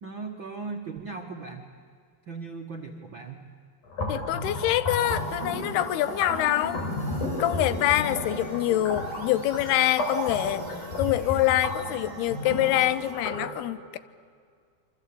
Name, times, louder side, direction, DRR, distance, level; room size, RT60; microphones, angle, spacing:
voice 1, 0.0-1.7 2.3-3.4, right 4 dB, 65° right, 2 dB, 1.2 m, -38 dB
sound 1, 3.9-13.4, left 1 dB, 50° left, 6.7 m, -32 dB
voice 2, 4.1-6.8 7.4-10.6 11.0-14.0, left 14 dB, 85° left, 15 dB, 2.9 m, -25 dB
sound 2, 5.1-13.1, right 2 dB, 15° right, 5.0 m, -44 dB
27.5 x 24.5 x 8.6 m, 2.1 s
omnidirectional pair, 4.5 m